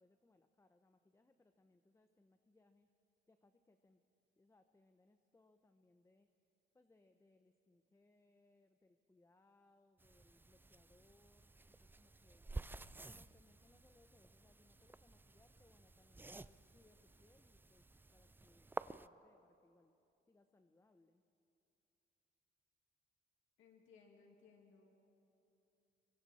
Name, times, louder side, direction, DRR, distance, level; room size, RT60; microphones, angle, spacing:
voice 1, 0.0-2.9 3.3-4.0 4.4-6.3 6.7-12.5 13.1-17.9 18.1-18.7 19.0-19.9 20.3-21.2, left 2 dB, 15° left, 8 dB, 0.8 m, -72 dB
sound 1, 10.0-19.1, right 2 dB, 10° right, 0.4 m, -52 dB
voice 2, 23.6-24.9, left 5 dB, 85° left, 1 dB, 2.4 m, -64 dB
26.0 x 23.5 x 4.3 m, 2.8 s
cardioid pair, 90°, 20 cm